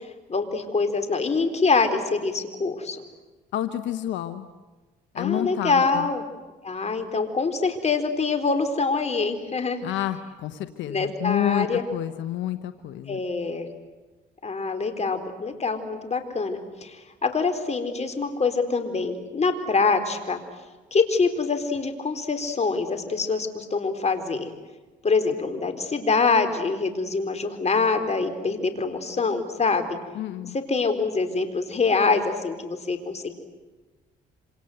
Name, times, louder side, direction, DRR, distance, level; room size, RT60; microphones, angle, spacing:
voice 1, 0.3-3.0 5.2-6.2 6.6-9.8 10.9-11.8 13.1-13.7 14.4-20.4 20.9-24.5 25.0-30.0 30.5-33.3, left 4 dB, 35° left, 7 dB, 4.3 m, -25 dB
voice 2, 3.5-4.5 5.1-6.1 9.8-13.2 30.1-30.6, left 12 dB, 80° left, 10 dB, 1.2 m, -29 dB
27.0 x 27.0 x 8.0 m, 1.2 s
supercardioid pair, 75°, 19 cm